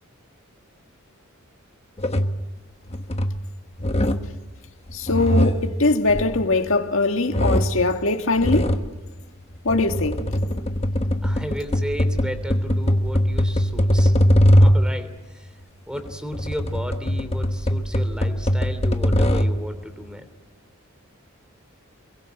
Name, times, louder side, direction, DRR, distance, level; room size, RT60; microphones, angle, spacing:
sound 1, 2.0-2.4 2.9-3.4 3.8-4.4 4.9-6.9 7.3-7.9 8.4-8.9 9.5-15.0 15.9-19.7, equal, 30° left, 1.2 m, -21 dB
voice 1, 4.9-8.8 9.6-10.3, left 2 dB, 70° left, 1.9 m, -21 dB
voice 2, 11.2-14.1 14.6-15.5 15.8-20.3, equal, 5° right, 3.2 m, -34 dB
28.0 x 23.0 x 7.9 m
head